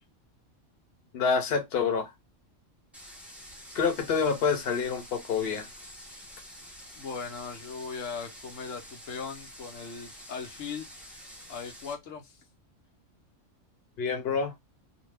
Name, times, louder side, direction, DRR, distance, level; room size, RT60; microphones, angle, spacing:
voice 1, 1.1-2.1 3.7-5.7 14.0-14.5, left 6 dB, 55° left, 0.9 m, -27 dB
sound 1, 2.9-11.9, equal, ahead, 0.6 m, -48 dB
voice 2, 7.0-10.9 11.5-12.4, left 5 dB, 80° left, 1.1 m, -39 dB
2.6 x 2.2 x 3.2 m
omnidirectional pair, 1.3 m